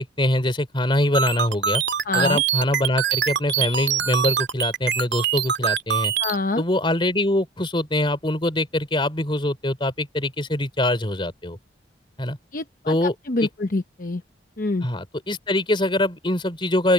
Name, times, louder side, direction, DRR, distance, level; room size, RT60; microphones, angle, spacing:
voice 1, 0.0-1.8 2.1-6.1 6.6-11.6 12.2-12.4 12.9-13.1 13.4-13.5 14.8-16.9, left 1 dB, 30° left, 3.3 m, -23 dB
sound 1, 1.1-6.4, right 8 dB, 80° right, 2.4 m, -23 dB
voice 2, 2.0-2.4 6.2-6.6 12.5-14.2 14.6-14.9, left 3 dB, 50° left, 0.9 m, -26 dB
open air
head